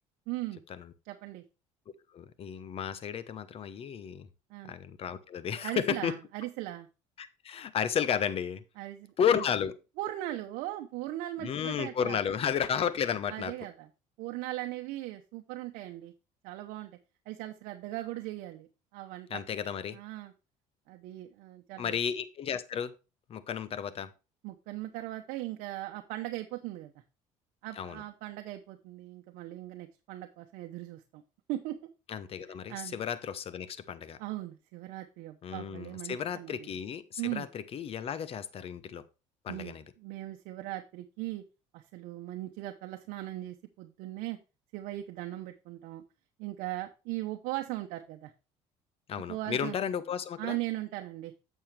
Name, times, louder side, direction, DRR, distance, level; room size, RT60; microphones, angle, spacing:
voice 1, 0.3-0.6 1.0-1.4 4.5-4.7 5.6-6.9 8.8-9.4 10.0-12.2 13.3-13.9 14.2-16.1 16.4-17.0 17.3-19.4 19.9-20.3 20.9-22.0 24.4-26.9 27.6-31.2 31.5-31.8 32.7-33.0 34.2-36.7 37.2-37.5 39.5-41.4 41.7-44.4 44.7-46.0 46.4-48.3 49.3-49.8 50.4-51.3, right 16 dB, 80° right, 5 dB, 0.8 m, -39 dB
voice 2, 2.1-4.3 4.7-6.1 7.2-8.6 9.2-9.7 11.4-13.5 19.3-20.0 21.8-22.9 23.3-24.1 27.8-28.0 32.1-34.2 35.4-39.0 39.4-39.8 49.1-50.6, left 8 dB, 45° left, 15 dB, 0.9 m, -33 dB
8.7 x 7.0 x 3.3 m, 0.30 s
cardioid pair, 110°, 14 cm